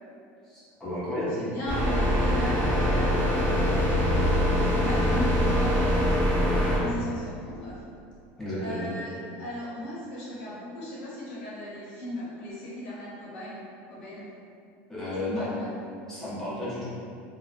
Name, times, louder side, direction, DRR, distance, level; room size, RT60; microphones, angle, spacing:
voice 1, 0.4-1.4 8.4-8.9 14.9-15.4 16.1-17.0, left 1 dB, 5° left, -10 dB, 0.5 m, -32 dB
voice 2, 1.3-3.3 4.7-6.1 6.6-7.8 8.6-13.6 13.9-14.3 15.2-15.7, equal, 90° left, -8 dB, 0.9 m, -36 dB
sound 1, 1.7-6.8, equal, 20° right, 0.8 m, -23 dB
2.6 x 2.0 x 2.4 m, 2.5 s
cardioid pair, 180°, 6 cm